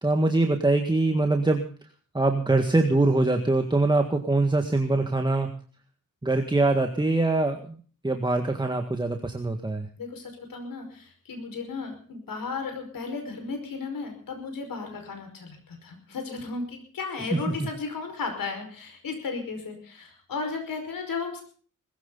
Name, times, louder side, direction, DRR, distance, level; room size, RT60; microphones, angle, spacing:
voice 1, 0.0-1.6 2.1-5.5 6.2-9.9 17.3-17.7, right 2 dB, 15° right, 4 dB, 1.8 m, -23 dB
voice 2, 10.0-21.4, left 4 dB, 85° left, 5 dB, 5.3 m, -35 dB
20.0 x 16.0 x 4.0 m, 0.43 s
wide cardioid pair, 100°, 33 cm